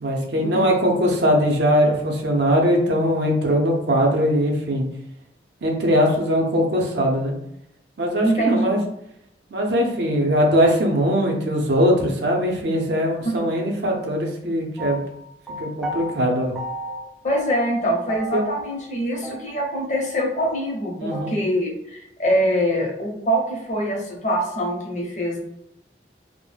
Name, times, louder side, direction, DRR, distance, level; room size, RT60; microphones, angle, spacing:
voice 1, 0.0-4.8 5.6-7.3 8.0-8.8 9.5-15.0 15.6-16.6 18.3-18.4 21.0-21.3, equal, 70° right, 1 dB, 0.5 m, -21 dB
voice 2, 8.2-8.8 17.2-25.4, equal, 40° left, -1 dB, 0.6 m, -24 dB
sound 1, 14.8-16.1 16.6-17.1 17.3-17.8 18.1-18.9 19.2-19.3 19.6-19.7 20.0-20.1 20.4-21.3, equal, ahead, 0.3 m, -33 dB
2.2 x 2.0 x 3.2 m, 0.79 s
head